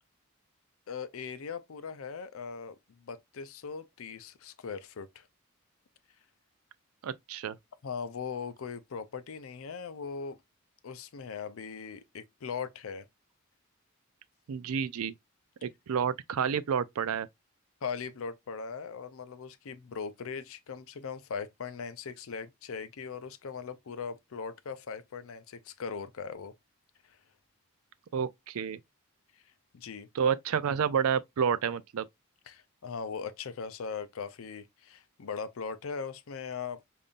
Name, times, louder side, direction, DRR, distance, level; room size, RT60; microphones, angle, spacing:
voice 1, 0.9-5.3 7.8-10.4 10.8-13.1 17.8-26.5 27.0-27.2 29.7-30.1 32.5-36.8, left 5 dB, 70° left, 0.5 m, -39 dB
voice 2, 7.0-7.6 14.5-15.1 15.6-17.3 28.1-28.8 30.1-32.1, right 7 dB, 80° right, 0.4 m, -29 dB
5.3 x 2.6 x 2.4 m
head